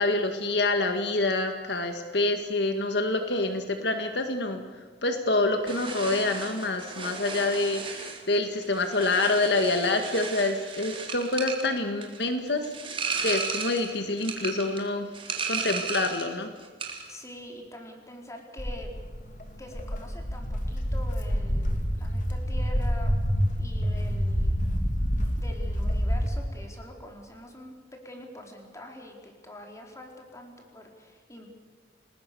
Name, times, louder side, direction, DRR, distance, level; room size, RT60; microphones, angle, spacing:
voice 1, 0.0-4.6 5.0-12.6 13.2-15.1 15.5-16.5, left 2 dB, 65° left, 6 dB, 1.8 m, -27 dB
sound 1, 5.6-16.4 16.6-17.1, right 5 dB, 30° right, 3.7 m, -35 dB
voice 2, 17.1-18.9 19.6-23.1 23.6-24.6 25.4-31.5, left 1 dB, 15° left, 2 dB, 4.4 m, -45 dB
Walk footsteps, 18.6-26.3, equal, 45° left, 3.0 m, -27 dB
29.5 x 20.5 x 6.9 m, 1.6 s
head